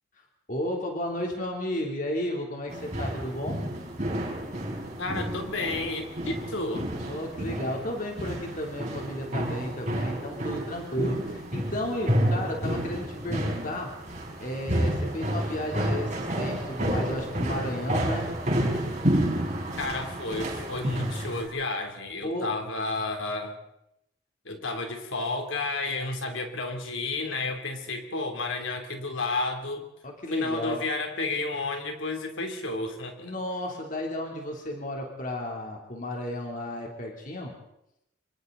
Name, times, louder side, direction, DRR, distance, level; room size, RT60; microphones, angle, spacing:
voice 1, 0.5-3.6 7.0-13.9 14.4-18.3 22.2-22.5 30.0-30.8 33.2-37.5, left 1 dB, 40° left, 0 dB, 3.3 m, -33 dB
sound 1, 2.7-21.5, right 1 dB, 35° right, 5.0 m, -30 dB
voice 2, 5.0-6.9 19.8-23.6 24.4-29.8 30.3-33.3, left 3 dB, 75° left, 4 dB, 3.3 m, -31 dB
26.0 x 25.0 x 4.0 m, 0.82 s
head